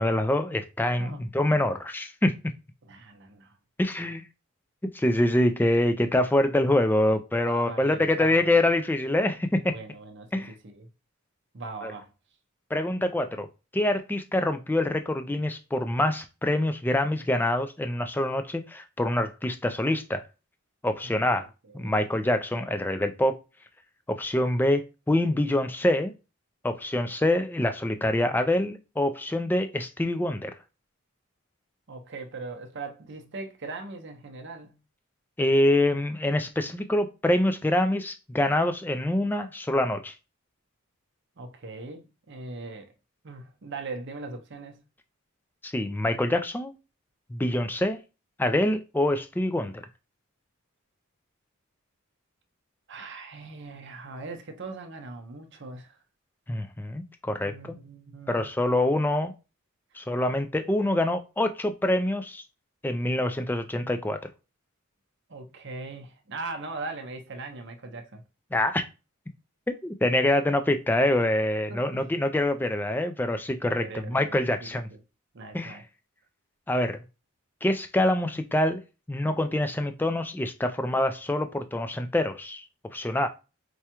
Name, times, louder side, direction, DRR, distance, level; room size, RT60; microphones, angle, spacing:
voice 1, 0.0-2.3 3.8-4.2 4.9-9.7 10.3-10.5 11.8-11.9 12.7-13.5 13.7-20.2 20.8-21.5 21.7-23.4 24.1-26.1 26.6-30.5 35.4-40.1 45.6-46.7 47.3-48.0 48.4-49.8 56.5-57.8 58.3-59.3 59.9-62.4 62.8-64.2 68.5-68.8 69.8-74.9 75.5-75.8 76.7-77.0 77.6-78.8 79.1-82.6 82.9-83.3, left 1 dB, 10° left, 0.3 m, -25 dB
voice 2, 0.9-1.3 2.8-3.6 7.5-8.6 9.7-10.9 11.5-12.1 21.0-21.5 21.7-22.1 31.9-34.8 41.4-42.9 43.2-44.8 52.9-56.0 57.4-58.5 65.3-68.2 71.7-72.1 73.6-74.3 74.6-75.0 75.3-75.8, right 3 dB, 55° right, 0.7 m, -40 dB
4.7 x 2.2 x 2.9 m
head